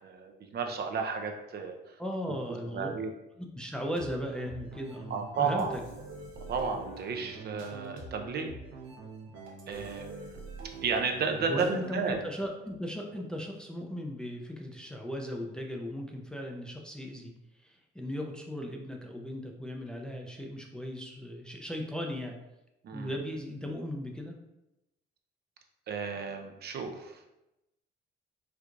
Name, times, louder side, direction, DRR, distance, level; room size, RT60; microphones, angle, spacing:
voice 1, 0.0-2.0 2.5-3.1 5.1-5.7 6.5-8.5 9.7-10.4 10.8-12.2 22.8-23.1 25.9-27.3, right 5 dB, 55° right, 4 dB, 0.5 m, -33 dB
voice 2, 2.0-2.9 3.4-5.8 11.5-17.3 17.6-22.4 22.9-24.3, equal, 5° left, 1 dB, 0.4 m, -37 dB
sound 1, 4.0-12.1, right 3 dB, 85° right, 0.8 m, -45 dB
4.5 x 2.4 x 2.5 m, 0.93 s
cardioid pair, 90°, 20 cm